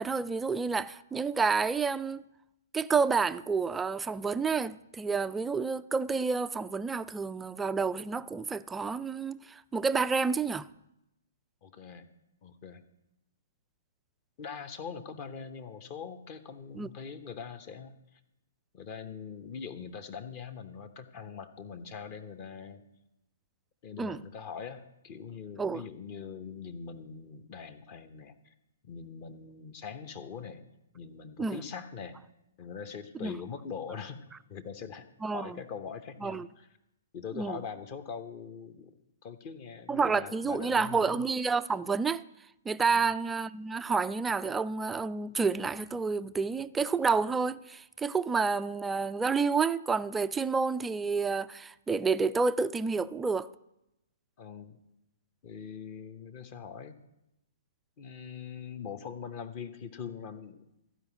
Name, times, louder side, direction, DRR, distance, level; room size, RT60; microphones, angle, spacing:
voice 1, 0.0-2.2 2.7-10.7 16.7-16.9 24.0-24.2 25.6-25.8 31.4-31.6 33.2-33.4 35.2-35.6 36.2-36.5 37.3-37.6 39.9-42.2 42.7-53.5, right 5 dB, 10° right, 0.3 m, -29 dB
voice 2, 11.6-12.1 12.4-12.8 14.4-17.9 18.7-22.8 23.8-28.5 28.8-30.7 30.9-32.2 32.6-34.2 34.5-35.1 35.3-36.7 37.1-38.9 39.2-41.2 42.9-43.1 54.4-54.8 55.4-57.0 58.0-60.6, left 6 dB, 30° left, 1.0 m, -42 dB
14.5 x 5.1 x 9.4 m
figure-of-eight pair, 120°, 0 cm